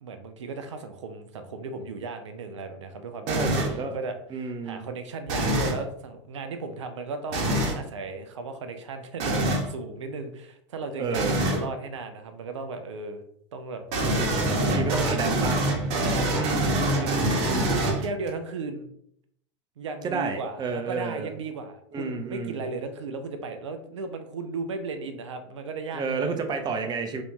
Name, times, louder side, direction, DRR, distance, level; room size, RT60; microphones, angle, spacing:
voice 1, 0.0-13.2 13.5-14.0 14.6-15.5 15.9-17.2 17.6-18.9 19.8-26.4, right 4 dB, 80° right, 7 dB, 0.4 m, -35 dB
voice 2, 3.3-4.0 4.3-4.9 10.9-11.4 14.0-15.7 16.3-17.7 20.0-21.3 21.9-22.7 25.9-27.2, right 4 dB, 30° right, 5 dB, 0.6 m, -31 dB
sound 1, 3.3-3.8 5.3-5.8 7.3-7.8 9.2-9.7 11.1-11.6 13.9-18.3, right 1 dB, 55° right, 1.0 m, -25 dB
3.0 x 2.5 x 3.5 m, 0.71 s
hypercardioid pair, 85°, 15 cm